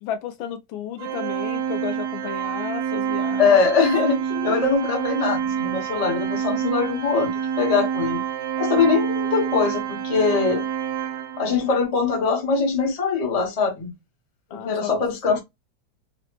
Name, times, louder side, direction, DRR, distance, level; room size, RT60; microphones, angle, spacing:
voice 1, 0.0-3.8 4.3-4.5 14.5-14.9, left 8 dB, 85° left, 1.5 m, -33 dB
Organ, 1.0-11.7, right 8 dB, 70° right, 1.0 m, -27 dB
voice 2, 3.4-7.3 7.6-8.2 8.6-10.6 11.4-13.9 14.5-15.4, left 5 dB, 45° left, 0.4 m, -22 dB
3.8 x 2.1 x 2.9 m
omnidirectional pair, 2.1 m